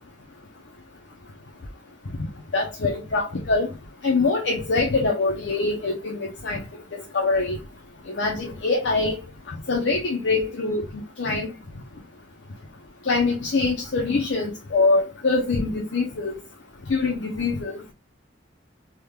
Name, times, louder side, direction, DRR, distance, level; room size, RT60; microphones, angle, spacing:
voice 1, 2.5-3.7 4.0-6.6 6.9-7.6 8.1-9.2 9.7-11.5 13.1-16.4 16.9-17.8, left 3 dB, 80° left, 0.7 m, -24 dB
3.4 x 3.1 x 2.3 m
head